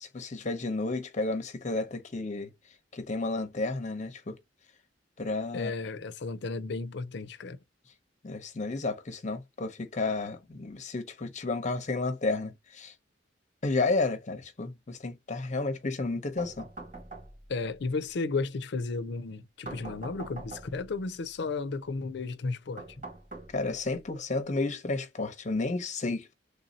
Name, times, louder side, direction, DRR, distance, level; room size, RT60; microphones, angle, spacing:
voice 1, 0.0-2.5 2.9-4.4 5.2-5.7 8.2-12.9 13.6-16.7 23.5-26.3, left 3 dB, 40° left, 0.8 m, -32 dB
voice 2, 5.5-7.6 17.5-22.8, left 3 dB, 65° left, 0.5 m, -33 dB
sound 1, 16.4-17.6 19.7-20.9 22.8-23.9, right 2 dB, 45° right, 2.1 m, -43 dB
3.4 x 2.7 x 4.0 m
head